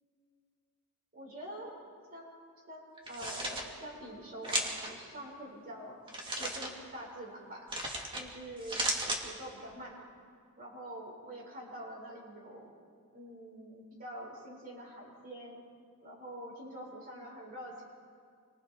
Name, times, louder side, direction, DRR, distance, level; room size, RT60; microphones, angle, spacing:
voice 1, 1.1-1.7 2.1-2.3 2.7-6.0 6.4-7.7 8.2-8.8 9.2-10.0 10.6-12.7 13.1-15.6 16.0-17.8, right 1 dB, 45° right, -5 dB, 7.1 m, -45 dB
sound 1, 3.0-3.6 4.4-4.9 6.1-6.7 7.7-8.2 8.6-9.2, right 1 dB, 25° right, 2.7 m, -34 dB
30.0 x 25.0 x 4.1 m, 2.2 s
head